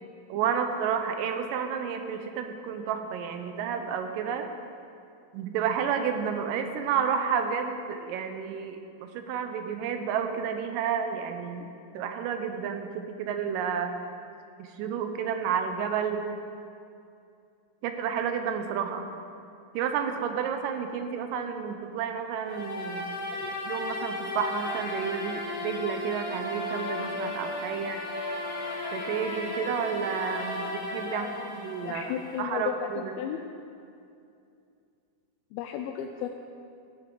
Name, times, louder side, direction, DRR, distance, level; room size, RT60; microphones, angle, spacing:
voice 1, 0.3-4.5 5.3-13.9 14.6-16.3 17.8-19.1 19.7-23.1 23.7-28.0 28.9-31.3 31.6-33.1, right 7 dB, 80° right, 6 dB, 2.0 m, -31 dB
sound 1, 22.4-32.4, left 2 dB, 35° left, 1.6 m, -35 dB
voice 2, 31.1-31.6 31.8-33.4 35.5-36.3, left 9 dB, 85° left, 4 dB, 2.3 m, -34 dB
13.5 x 9.2 x 3.8 m, 2.5 s
omnidirectional pair, 4.4 m